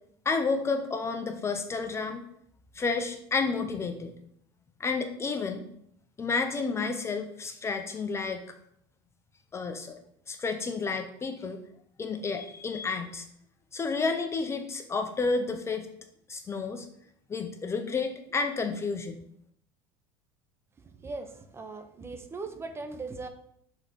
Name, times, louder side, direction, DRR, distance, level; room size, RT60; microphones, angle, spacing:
voice 1, 0.3-2.2 2.8-4.1 4.8-5.7 6.2-8.4 9.5-9.9 10.3-11.6 12.0-13.3 13.7-15.9 16.3-16.9 17.3-19.2, left 4 dB, 20° left, 6 dB, 0.6 m, -30 dB
voice 2, 21.0-23.3, right 3 dB, 20° right, 8 dB, 0.7 m, -39 dB
6.4 x 3.6 x 5.1 m, 0.69 s
supercardioid pair, 125°, 13 cm